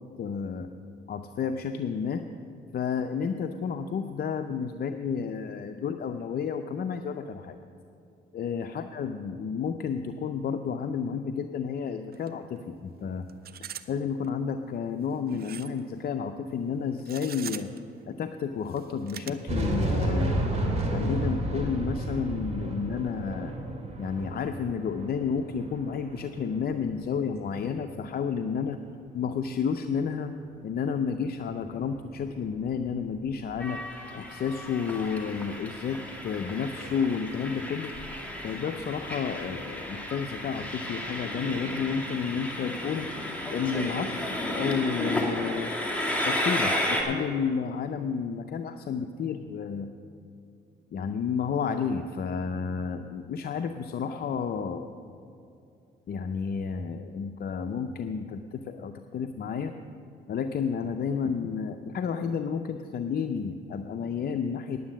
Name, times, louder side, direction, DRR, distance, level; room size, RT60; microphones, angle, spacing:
voice 1, 0.2-0.7 1.1-2.2 2.7-7.6 8.3-13.3 13.9-17.7 18.1-20.4 20.9-23.5 24.0-28.8 29.1-30.3 30.6-33.8 34.1-37.9 38.4-43.1 43.5-45.7 46.2-49.9 50.9-54.9 56.1-59.7 60.3-64.8, left 6 dB, 50° left, 6 dB, 0.5 m, -31 dB
sound 1, 12.1-12.3 12.6-12.7 13.3-13.9 14.2-14.3 15.3-15.8 17.0-17.8 18.6-19.3, right 9 dB, 50° right, 0.6 m, -41 dB
sound 2, 19.5-26.8 27.1-27.4 31.5-33.6, right 1 dB, 35° right, 2.4 m, -32 dB
Train, 33.6-47.0, left 1 dB, 5° left, 2.0 m, -33 dB
9.8 x 9.5 x 7.3 m, 2.6 s
cardioid pair, 90°, 20 cm